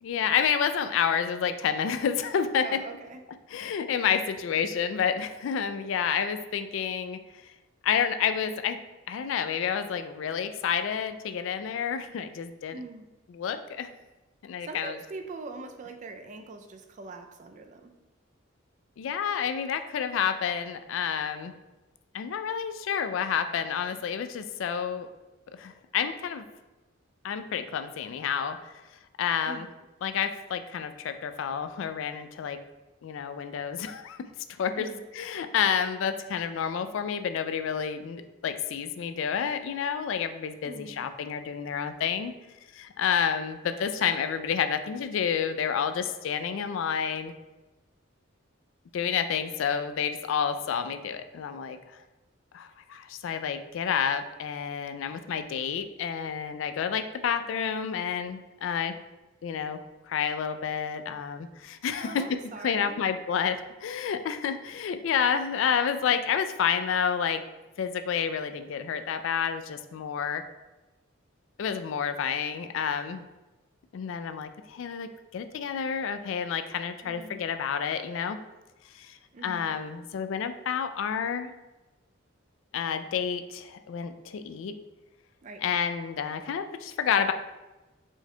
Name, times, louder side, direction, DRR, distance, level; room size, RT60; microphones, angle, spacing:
voice 1, 0.0-2.8 3.5-7.2 7.8-8.8 9.1-12.8 13.3-13.9 14.4-15.0 19.0-21.5 22.1-25.1 25.5-26.4 27.2-28.7 29.2-29.7 30.0-32.6 33.0-34.2 34.6-34.9 35.1-42.3 42.7-47.3 48.9-51.8 52.5-59.0 59.4-59.8 60.1-67.4 67.8-70.4 71.6-73.3 73.9-78.4 78.9-81.5 82.7-84.7 85.6-87.3, left 7 dB, 70° left, 10 dB, 0.3 m, -29 dB
voice 2, 2.6-3.2 12.7-13.0 14.6-17.9 29.5-29.7 34.8-35.0 40.6-41.0 62.0-63.0 77.0-77.4 79.3-79.7 85.4-85.6, right 3 dB, 35° right, 6 dB, 0.3 m, -42 dB
4.5 x 4.3 x 2.2 m, 1.1 s
head